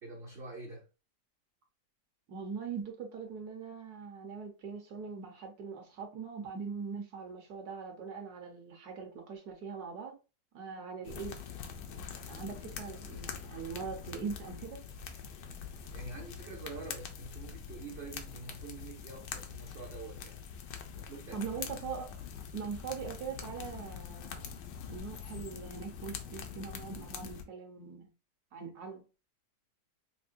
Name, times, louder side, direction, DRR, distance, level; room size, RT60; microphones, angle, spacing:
voice 1, 0.0-0.9 15.4-20.4 20.9-21.5, right 3 dB, 50° right, 0.7 m, -46 dB
voice 2, 2.3-10.1 10.5-11.4 12.3-14.8 21.3-22.2 22.5-24.4 24.9-28.1 28.5-29.0, right 5 dB, 65° right, 1.5 m, -41 dB
sound 1, 11.0-27.4, left 7 dB, 85° left, 1.3 m, -44 dB
5.6 x 2.1 x 2.5 m
omnidirectional pair, 1.8 m